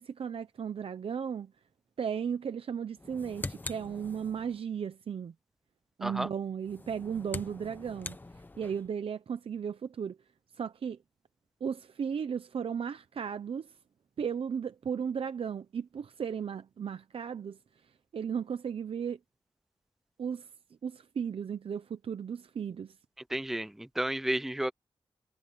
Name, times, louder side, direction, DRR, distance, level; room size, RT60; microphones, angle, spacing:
voice 1, 0.0-1.5 2.0-5.3 6.0-8.2 8.6-10.2 10.6-11.0 11.6-13.7 14.2-17.6 18.1-19.2 20.2-20.5 20.8-23.0, right 7 dB, 70° right, 0.6 m, -35 dB
sound 1, 3.0-4.6 6.6-8.9, left 2 dB, 20° left, 0.9 m, -43 dB
voice 2, 23.3-24.7, right 1 dB, 5° right, 0.4 m, -32 dB
wide cardioid pair, 170°, 10 cm